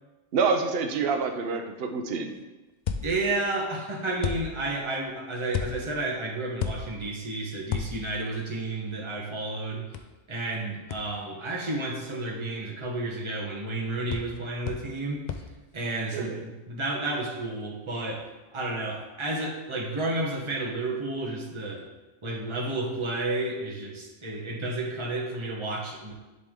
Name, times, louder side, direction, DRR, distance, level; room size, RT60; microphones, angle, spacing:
voice 1, 0.3-2.3 16.1-16.4, right 5 dB, 55° right, 4 dB, 0.8 m, -27 dB
sound 1, 2.9-3.5 4.2-4.9 5.5-6.1 6.6-7.2 7.7-8.3 9.9-10.0 10.9-11.0 14.1-14.4 14.7-15.0 15.3-15.5, left 7 dB, 75° left, 0.4 m, -33 dB
voice 2, 3.0-9.8 10.3-15.3 15.7-18.3 18.5-21.8 22.2-26.1, right 2 dB, 25° right, -2 dB, 1.1 m, -31 dB
10.5 x 3.5 x 3.7 m, 1.1 s
omnidirectional pair, 1.3 m